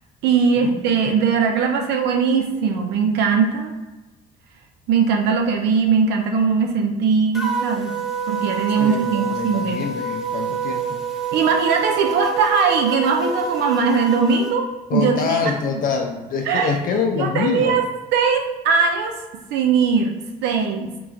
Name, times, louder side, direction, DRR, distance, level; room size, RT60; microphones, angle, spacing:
voice 1, 0.2-3.7 4.9-7.9 8.3-9.9 11.3-15.8 16.4-16.8 17.2-17.8 18.1-19.2 19.5-20.1 20.4-20.9, right 5 dB, 80° right, 3 dB, 0.5 m, -20 dB
sound 1, 7.3-14.5, right 5 dB, ahead, 0.6 m, -26 dB
voice 2, 8.8-11.0 14.9-17.8, left 5 dB, 55° left, 3 dB, 0.5 m, -25 dB
3.9 x 2.4 x 4.4 m, 1.2 s
cardioid pair, 110°, 17 cm